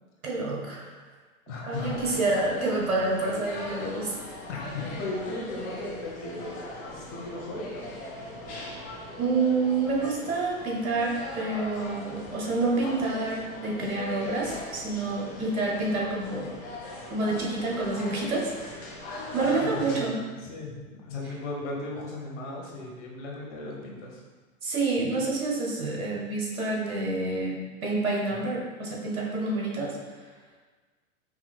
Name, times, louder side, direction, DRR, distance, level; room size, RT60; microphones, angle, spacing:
voice 1, 0.2-0.9 1.7-4.1 9.2-16.5 17.1-18.9 19.3-20.2 24.6-30.0, right 3 dB, 75° right, -3 dB, 1.1 m, -28 dB
voice 2, 1.5-2.4 4.5-8.0 19.4-24.2 28.5-28.6, left 2 dB, 55° left, -2 dB, 1.0 m, -37 dB
sound 1, 1.7-20.0, left 1 dB, 20° left, 0.5 m, -40 dB
4.8 x 2.9 x 2.3 m, 1.4 s
hypercardioid pair, 105°, 43 cm